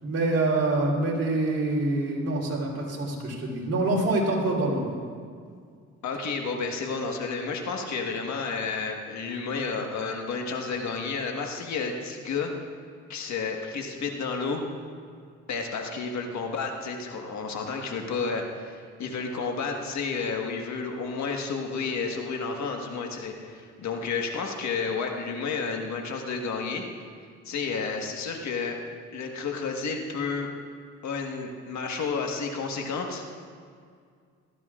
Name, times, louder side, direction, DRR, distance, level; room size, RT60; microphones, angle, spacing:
voice 1, 0.0-4.9, right 2 dB, 50° right, -2 dB, 3.7 m, -26 dB
voice 2, 6.0-12.5 13.1-14.6 15.5-26.8 27.4-28.8 29.1-30.5 31.0-33.2, left 4 dB, 65° left, 2 dB, 1.5 m, -31 dB
19.0 x 13.5 x 2.5 m, 2.1 s
cardioid pair, 90°, 30 cm